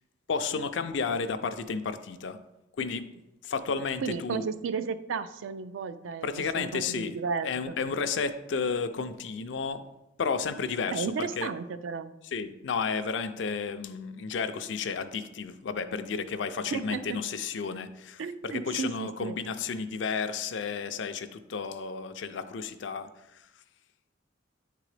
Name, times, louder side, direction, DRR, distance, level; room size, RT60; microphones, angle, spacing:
voice 1, 0.3-2.4 2.8-3.1 3.4-4.5 6.2-7.1 7.4-9.9 10.2-11.5 12.3-23.1, left 5 dB, 65° left, 10 dB, 0.4 m, -32 dB
voice 2, 4.0-7.8 10.9-12.1 16.7-17.2 18.2-19.4, right 5 dB, 80° right, 12 dB, 0.4 m, -34 dB
9.2 x 3.7 x 3.3 m, 0.95 s
head